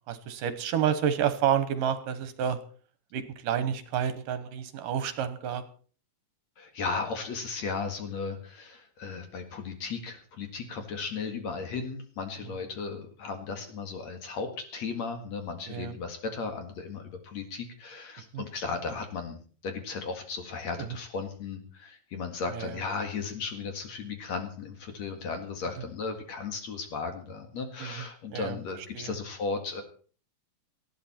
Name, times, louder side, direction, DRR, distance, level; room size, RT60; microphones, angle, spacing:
voice 1, 0.1-2.6 3.1-5.6 15.7-15.9 18.3-18.4 20.8-20.9 22.5-22.7 27.8-28.0 28.3-28.6 28.9-29.1, right 9 dB, 70° right, 12 dB, 2.6 m, -29 dB
voice 2, 6.6-29.8, left 4 dB, 55° left, 6 dB, 2.8 m, -35 dB
19.0 x 13.5 x 4.3 m, 0.41 s
omnidirectional pair, 4.2 m